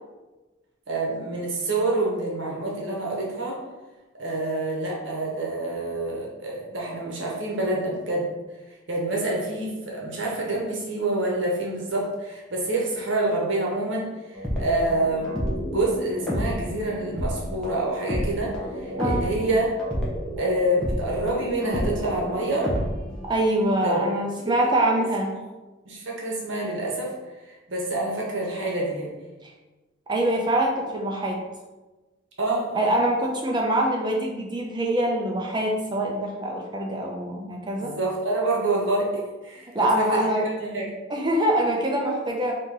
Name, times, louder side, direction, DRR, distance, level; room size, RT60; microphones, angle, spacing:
voice 1, 0.9-3.6 4.2-8.3 8.9-14.1 14.6-15.3 15.6-19.7 20.4-22.7 23.8-24.1 25.9-27.1 27.7-29.1 32.4-32.9 37.8-39.1 39.4-39.7 40.1-40.2 40.6-40.8, right 2 dB, 65° right, -3 dB, 1.0 m, -27 dB
sound 1, 14.3-23.4, equal, 5° left, 0.9 m, -30 dB
voice 2, 19.0-19.3 23.3-25.3 29.4-29.5 30.1-31.4 32.7-37.9 39.7-40.5 41.1-42.5, right 1 dB, 20° right, 0 dB, 0.5 m, -24 dB
4.3 x 2.8 x 3.7 m, 1.2 s
head